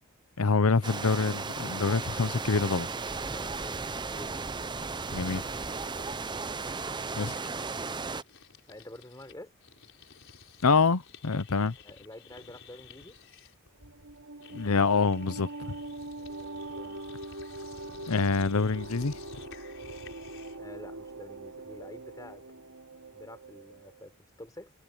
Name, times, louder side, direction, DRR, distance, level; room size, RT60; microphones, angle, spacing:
voice 1, 0.4-2.9 5.1-5.4 7.2-7.3 10.6-11.7 14.5-15.7 18.1-19.1, left 4 dB, 75° left, 0.8 m, -26 dB
sound 1, 0.8-8.2, right 4 dB, 20° right, 0.6 m, -35 dB
sound 2, 3.2-9.3 9.6-20.7, left 4 dB, 60° left, 5.2 m, -53 dB
voice 2, 3.3-4.3 8.7-9.5 11.8-13.2 16.2-17.0 20.6-22.4 23.1-24.7, left 1 dB, 15° left, 5.4 m, -48 dB
sound 3, 13.8-24.0, right 2 dB, 80° right, 2.9 m, -43 dB
head